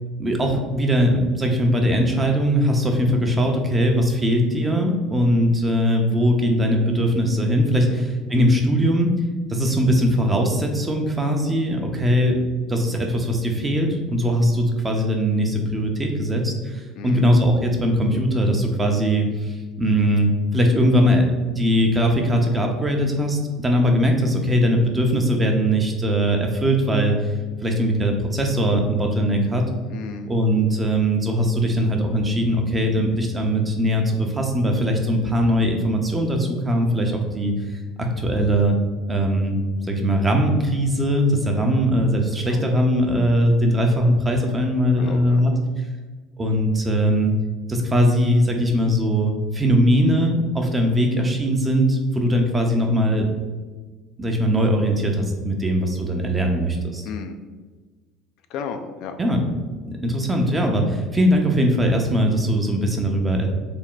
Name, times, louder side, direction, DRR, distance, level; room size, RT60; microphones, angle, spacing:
voice 1, 0.2-9.1 9.5-12.4 12.7-27.4 27.6-29.7 30.3-38.8 39.1-39.6 39.9-45.5 46.4-47.3 47.7-53.3 54.2-57.0 59.2-59.4 59.9-63.5, equal, 20° right, 2 dB, 0.7 m, -20 dB
voice 2, 17.0-17.3 29.9-30.3 42.4-42.6 45.0-45.4 57.0-57.4 58.5-59.1, left 6 dB, 65° left, 7 dB, 0.3 m, -34 dB
3.4 x 2.2 x 3.9 m, 1.3 s
hypercardioid pair, 75°, 0 cm